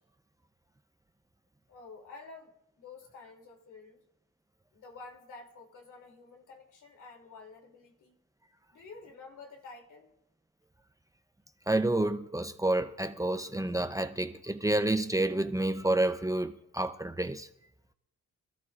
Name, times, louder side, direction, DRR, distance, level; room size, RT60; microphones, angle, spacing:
voice 1, 1.7-4.0 4.7-8.2 8.7-10.1, left 4 dB, 75° left, 3.1 m, -50 dB
voice 2, 11.7-17.5, right 1 dB, 10° right, 0.7 m, -29 dB
26.5 x 13.5 x 2.5 m
cardioid pair, 85°, 31 cm